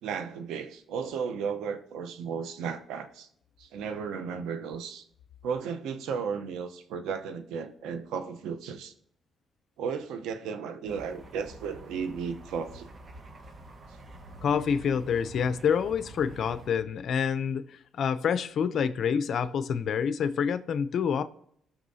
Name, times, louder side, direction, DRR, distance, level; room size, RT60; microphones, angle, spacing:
voice 1, 0.0-3.3 3.6-5.0 5.4-8.9 9.8-12.9, right 6 dB, 90° right, 0.8 m, -34 dB
sound 1, 10.9-16.7, right 2 dB, 40° right, 1.2 m, -47 dB
voice 2, 14.4-21.2, left 7 dB, 60° left, 0.6 m, -27 dB
18.0 x 6.2 x 2.8 m
cardioid pair, 90°, 0 cm